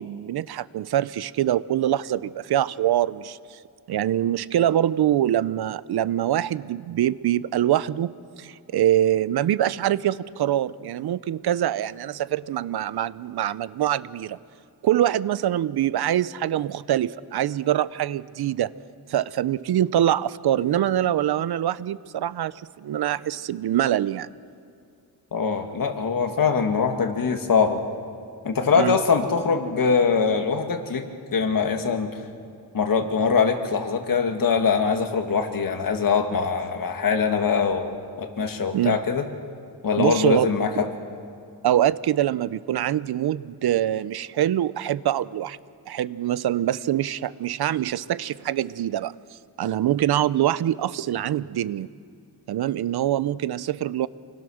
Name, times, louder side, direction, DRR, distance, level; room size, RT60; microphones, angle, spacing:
voice 1, 0.0-3.6 3.9-14.4 14.8-18.7 19.1-24.3 28.7-29.0 38.7-39.0 40.0-40.5 41.6-45.6 45.9-49.1 49.6-51.9 52.5-54.1, right 12 dB, 70° right, 18 dB, 0.7 m, -24 dB
voice 2, 25.3-27.8 28.4-31.1 31.3-32.1 32.7-39.2 39.8-40.9, left 5 dB, 55° left, 5 dB, 2.3 m, -23 dB
28.5 x 21.5 x 6.4 m, 2.4 s
wide cardioid pair, 125°, 41 cm